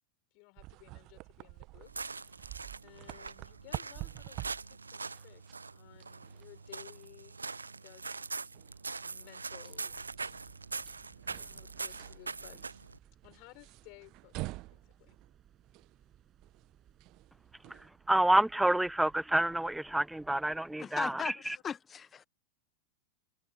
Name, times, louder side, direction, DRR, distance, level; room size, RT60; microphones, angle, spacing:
voice 1, 0.3-2.5 2.8-8.2 9.0-10.0 11.4-12.6 13.2-15.2 21.0-21.3, left 34 dB, 45° left, 6.4 m, -57 dB
sound 1, 0.6-17.9, right 22 dB, 40° right, 1.3 m, -48 dB
sound 2, 1.8-13.0, right 4 dB, 80° right, 0.7 m, -43 dB
sound 3, 9.9-20.7, right 9 dB, 25° right, 6.2 m, -63 dB
voice 2, 18.1-21.6, right 1 dB, 5° right, 0.7 m, -28 dB
voice 3, 20.8-21.3 21.6-22.3, left 7 dB, 20° left, 1.0 m, -37 dB
figure-of-eight pair, 90°, 0 cm